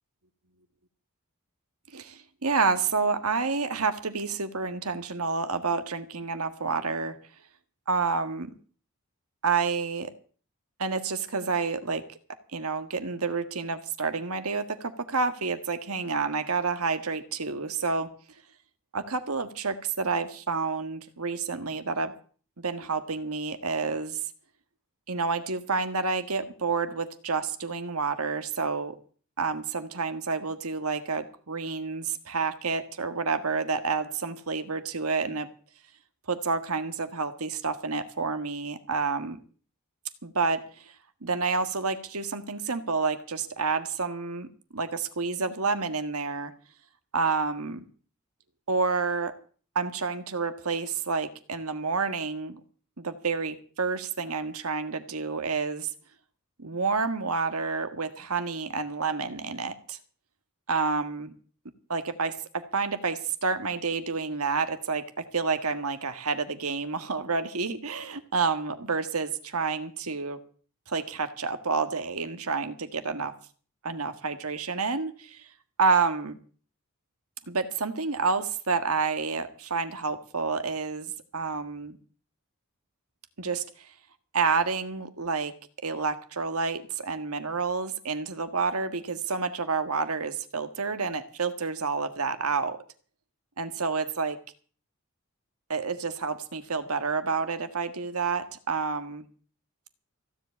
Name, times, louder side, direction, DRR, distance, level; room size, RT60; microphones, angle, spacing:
voice 1, 1.9-7.1 7.9-8.5 9.4-10.1 10.8-12.0 12.5-18.1 18.9-22.1 22.6-24.2 25.1-28.9 29.4-35.5 36.3-39.4 40.2-40.9 41.2-44.5 44.7-46.5 47.1-47.8 48.7-49.3 49.7-52.6 53.0-55.9 56.6-60.0 60.7-61.3 61.9-70.4 70.9-73.3 73.8-75.5 75.8-76.4 77.5-82.0 83.4-83.9 84.3-85.5 85.8-92.8 93.6-94.4 95.7-99.2, right 4 dB, 75° right, 9 dB, 1.6 m, -29 dB
16.0 x 7.8 x 8.4 m, 0.42 s
head